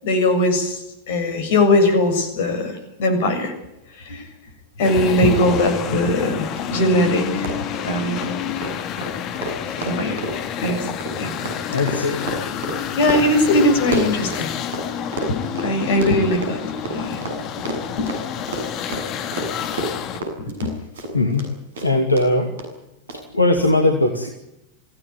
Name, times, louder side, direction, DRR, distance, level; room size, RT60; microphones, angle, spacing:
voice 1, 0.0-3.5 4.0-4.2 4.8-7.5 7.8-8.3 9.8-10.2 10.6-10.9 11.2-11.3 13.0-14.5 15.3-18.1 18.4-18.5 19.6-19.7 20.4-20.7, left 1 dB, 55° left, 7 dB, 7.3 m, -20 dB
sound 1, 4.8-20.2, left 9 dB, 35° left, 2.4 m, -29 dB
Run, 6.5-6.6 6.9-7.0 7.3-14.8 15.1-21.5 21.7-22.2 22.6-22.7 23.1-23.2, right 2 dB, 65° right, 7.4 m, -30 dB
voice 2, 11.7-12.3 21.1-21.5 21.8-22.5 23.3-24.3, left 2 dB, 80° left, 4 dB, 2.6 m, -19 dB
24.5 x 17.0 x 9.7 m, 0.87 s
figure-of-eight pair, 90°, 0 cm